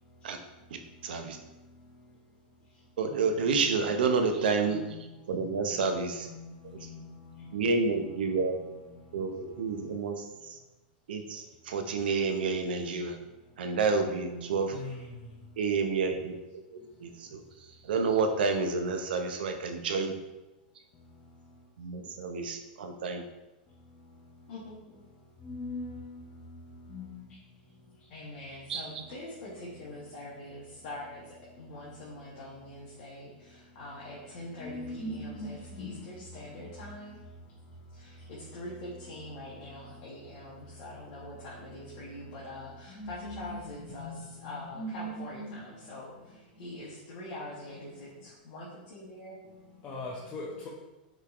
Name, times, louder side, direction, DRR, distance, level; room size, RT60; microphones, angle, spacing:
voice 1, 1.0-1.4 3.0-4.8 5.3-6.3 6.6-6.9 7.5-8.5 9.1-10.6 11.1-13.2 13.6-14.8 15.6-16.3 16.7-17.4 17.8-20.1 21.8-23.2 28.7-28.8, right 4 dB, 80° right, 6 dB, 0.6 m, -29 dB
voice 2, 14.3-14.9 24.5-25.0 28.1-37.2 37.9-49.4, left 1 dB, 55° left, -7 dB, 1.2 m, -44 dB
voice 3, 25.5-25.8 26.9-27.0 34.6-36.0 43.0-43.6 44.0-44.2 44.8-45.5 49.8-50.7, left 1 dB, 25° left, -6 dB, 0.7 m, -39 dB
5.7 x 3.2 x 2.5 m, 1.0 s
supercardioid pair, 135°, 5 cm